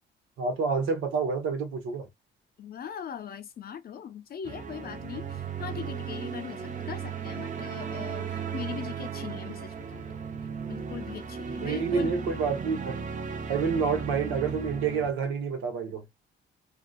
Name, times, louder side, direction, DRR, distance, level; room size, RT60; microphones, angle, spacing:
voice 1, 0.4-2.1 11.5-13.0 13.5-16.1, right 5 dB, 90° right, 0.9 m, -28 dB
voice 2, 2.6-10.1 10.7-12.5, left 8 dB, 50° left, 0.6 m, -40 dB
sound 1, 4.5-15.1, right 6 dB, 40° right, 0.6 m, -36 dB
2.7 x 2.2 x 2.2 m
cardioid pair, 90°, 20 cm